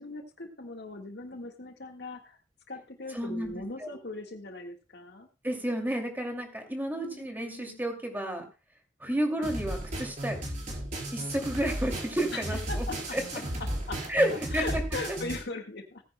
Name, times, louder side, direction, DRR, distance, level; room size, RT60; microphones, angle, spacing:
voice 1, 0.0-2.4 2.7-5.3 6.9-7.8 9.1-9.6 12.3-13.4 13.9-14.0 14.5-16.0, left 3 dB, 65° left, 4 dB, 1.7 m, -40 dB
voice 2, 3.1-3.9 5.4-8.5 9.0-10.4 11.1-12.8 13.1-13.2 14.1-14.8 15.1-15.2, right 1 dB, 10° right, 2 dB, 2.5 m, -31 dB
sound 1, 9.4-15.4, right 1 dB, 45° right, 4.3 m, -35 dB
18.0 x 10.0 x 2.2 m, 0.29 s
head